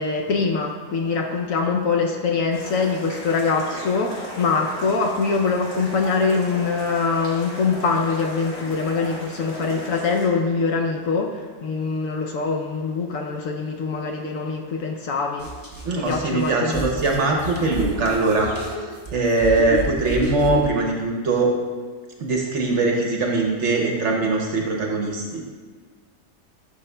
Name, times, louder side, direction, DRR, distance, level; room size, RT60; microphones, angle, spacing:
voice 1, 0.0-15.5 16.0-17.0, left 4 dB, 65° left, 2 dB, 0.9 m, -23 dB
sound 1, 2.5-10.3, left 1 dB, 90° left, 2.4 m, -37 dB
sound 2, 15.4-20.7, right 1 dB, 30° left, 0.4 m, -31 dB
voice 2, 15.8-21.5 22.2-25.4, right 3 dB, 55° right, 0 dB, 0.9 m, -22 dB
10.5 x 5.5 x 2.2 m, 1.5 s
omnidirectional pair, 1.7 m